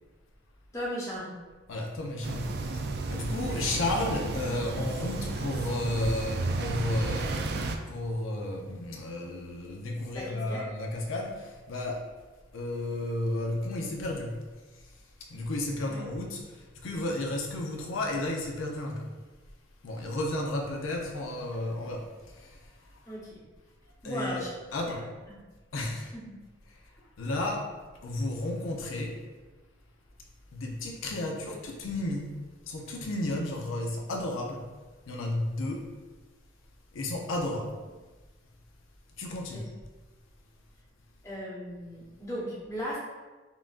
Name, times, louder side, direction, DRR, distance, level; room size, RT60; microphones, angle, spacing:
voice 1, 0.7-1.3 10.1-10.6 15.8-16.1 23.1-23.3 24.0-24.5 24.9-25.4 39.5-39.6 41.2-43.0, equal, 15° left, -7 dB, 0.9 m, -37 dB
voice 2, 1.7-12.0 12.5-14.4 15.3-19.1 19.8-22.7 24.0-25.1 25.7-26.1 26.7-26.8 27.2-27.7 28.0-29.2 30.5-32.4 32.6-34.7 35.1-35.9 36.9-37.7 39.2-39.7, left 1 dB, 90° left, 0 dB, 0.6 m, -33 dB
sound 1, 2.2-7.8, right 3 dB, 55° right, 0.3 m, -32 dB
5.5 x 2.6 x 2.5 m, 1.3 s
head